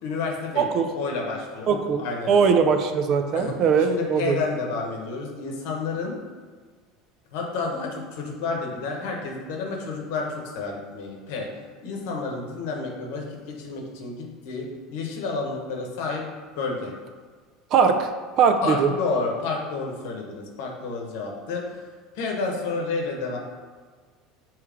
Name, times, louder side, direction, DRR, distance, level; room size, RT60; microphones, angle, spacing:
voice 1, 0.0-2.6 3.3-6.1 7.3-11.5 11.8-13.2 13.5-16.3 16.6-16.9 18.6-21.8 22.1-23.4, left 4 dB, 70° left, 0 dB, 0.9 m, -30 dB
voice 2, 0.5-0.9 1.7-4.4 17.7-18.1 18.4-18.9, right 6 dB, 45° right, 7 dB, 0.4 m, -21 dB
3.5 x 3.1 x 4.8 m, 1.6 s
supercardioid pair, 145°, 0 cm